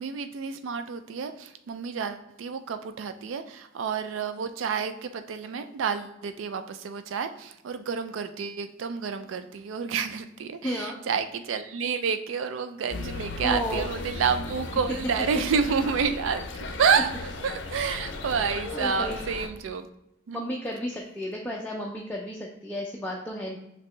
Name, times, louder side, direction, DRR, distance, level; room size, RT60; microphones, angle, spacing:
voice 1, 0.0-16.4 16.8-17.1 17.4-19.9 20.3-20.5, right 6 dB, 80° right, 9 dB, 0.4 m, -29 dB
voice 2, 10.6-11.0 13.4-13.9 18.7-19.3 20.3-23.6, equal, 10° left, -3 dB, 0.4 m, -33 dB
sound 1, 12.9-19.5, left 3 dB, 65° left, 0.5 m, -36 dB
5.1 x 2.8 x 3.1 m, 0.86 s
head